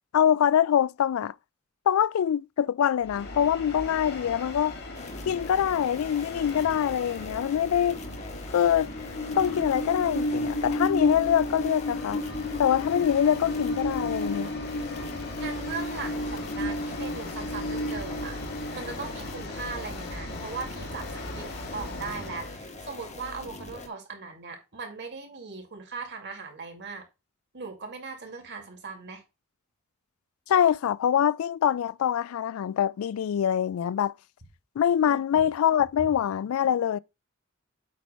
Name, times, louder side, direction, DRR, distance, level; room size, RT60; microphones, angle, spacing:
voice 1, 0.1-1.3 1.9-4.8 5.3-8.0 8.5-8.9 9.4-12.2 12.6-14.5 30.5-34.1 34.8-37.0, left 9 dB, 85° left, 0.3 m, -24 dB
Train, 3.1-22.5, left 1 dB, 55° left, 1.7 m, -34 dB
sound 1, 4.9-23.9, left 2 dB, 35° left, 1.3 m, -43 dB
voice 2, 15.4-18.4 18.7-27.0 27.5-29.2 35.0-35.5, right 4 dB, 55° right, 2.3 m, -39 dB
8.4 x 3.0 x 5.6 m
head